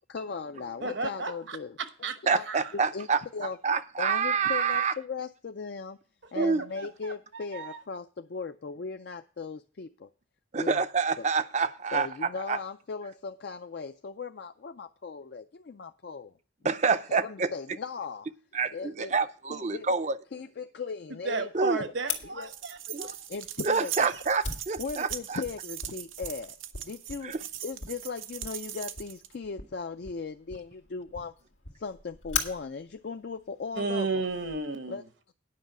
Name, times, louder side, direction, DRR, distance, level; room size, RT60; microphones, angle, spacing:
voice 1, 0.1-1.8 2.2-2.5 2.7-3.6 4.0-6.0 6.3-10.1 10.6-10.8 11.2-11.3 11.9-16.3 16.8-18.3 18.7-19.1 19.5-19.9 20.3-22.5 22.9-23.0 23.3-24.1 24.8-26.6 26.9-27.3 27.6-31.3 31.8-34.2 34.9-35.3, left 5 dB, 55° left, 0.4 m, -38 dB
voice 2, 0.8-1.6 2.0-2.2 2.5-2.6 6.3-6.5 6.8-7.8 21.2-23.2 33.8-35.0, right 4 dB, 70° right, 1.0 m, -33 dB
voice 3, 2.3-3.2 3.6-4.9 6.4-6.6 10.5-12.6 16.6-17.5 18.5-20.2 21.5-21.8 22.9-23.1 23.6-25.4 27.2-27.4, right 5 dB, 35° right, 0.5 m, -27 dB
Fire, 22.1-34.6, left 6 dB, 90° left, 1.8 m, -41 dB
sound 1, 22.4-29.3, right 11 dB, 90° right, 0.7 m, -40 dB
9.6 x 5.5 x 7.8 m
head